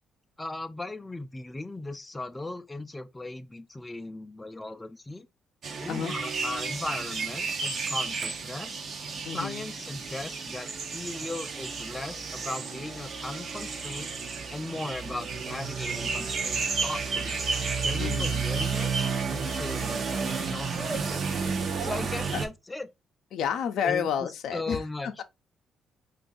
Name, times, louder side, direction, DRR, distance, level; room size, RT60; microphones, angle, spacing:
voice 1, 0.4-5.3 5.8-8.8 9.2-14.1 14.5-17.4 17.8-21.2 21.8-22.9 23.8-25.2, left 2 dB, 15° left, 0.3 m, -38 dB
sound 1, 5.6-22.5, right 5 dB, 55° right, 0.6 m, -31 dB
voice 2, 9.3-9.6 18.0-18.3 22.3-22.4 23.3-25.2, left 8 dB, 75° left, 0.4 m, -30 dB
2.5 x 2.4 x 3.8 m
cardioid pair, 90°, 0 cm